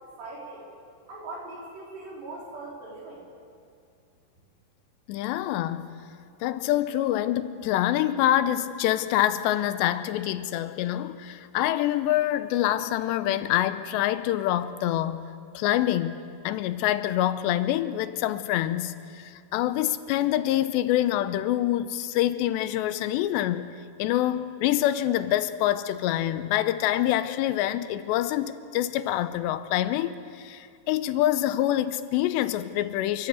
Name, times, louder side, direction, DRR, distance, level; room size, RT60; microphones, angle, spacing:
voice 1, 0.2-0.7 1.1-3.2, right 2 dB, 75° right, 6.5 m, -40 dB
voice 2, 5.1-6.0 6.4-15.2 15.5-16.2 16.4-23.7 24.0-33.3, left 13 dB, 90° left, 2.9 m, -26 dB
30.0 x 12.0 x 8.2 m
omnidirectional pair, 4.9 m